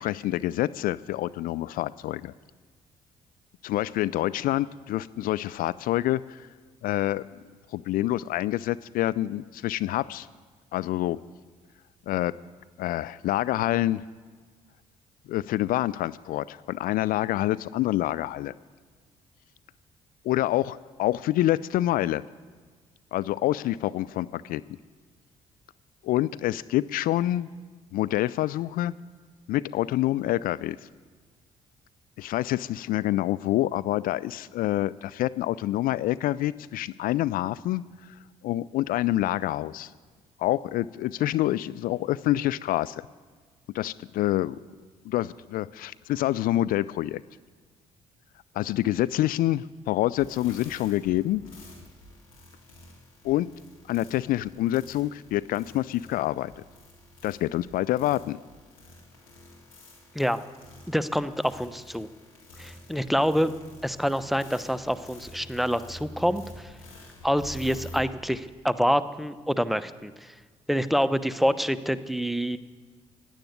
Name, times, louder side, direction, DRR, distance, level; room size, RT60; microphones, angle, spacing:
voice 1, 0.0-2.3 3.6-6.5 6.8-7.2 7.7-10.3 10.7-11.2 12.1-12.3 12.8-14.0 15.3-18.5 20.2-22.2 23.1-24.6 26.0-27.5 27.9-28.9 29.5-30.9 32.2-38.2 38.4-39.9 40.4-43.0 43.7-44.6 45.1-47.2 48.5-51.4 53.2-53.5 53.9-56.6 57.2-58.4, left 15 dB, 55° left, 17 dB, 0.4 m, -27 dB
sound 1, 50.1-68.0, left 1 dB, 85° left, 3.1 m, -48 dB
voice 2, 60.9-62.1 62.6-63.5 63.8-66.7 67.2-70.3 70.7-72.6, equal, ahead, 13 dB, 0.9 m, -26 dB
16.5 x 10.5 x 8.2 m, 1.5 s
figure-of-eight pair, 45°, 17 cm